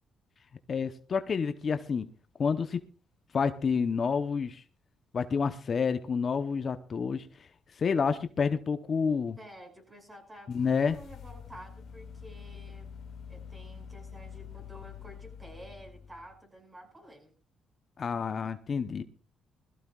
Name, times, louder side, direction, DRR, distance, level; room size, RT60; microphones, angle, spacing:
voice 1, 0.7-2.1 2.4-2.8 3.3-4.6 5.1-7.3 7.8-9.4 10.5-11.0 18.0-19.0, left 5 dB, 45° left, 9 dB, 0.8 m, -29 dB
voice 2, 9.4-12.9 13.3-17.3, equal, 20° right, 3 dB, 6.0 m, -50 dB
sound 1, 10.5-16.4, left 7 dB, 65° left, 1.2 m, -46 dB
21.5 x 14.5 x 2.4 m, 0.37 s
cardioid pair, 90°, 0 cm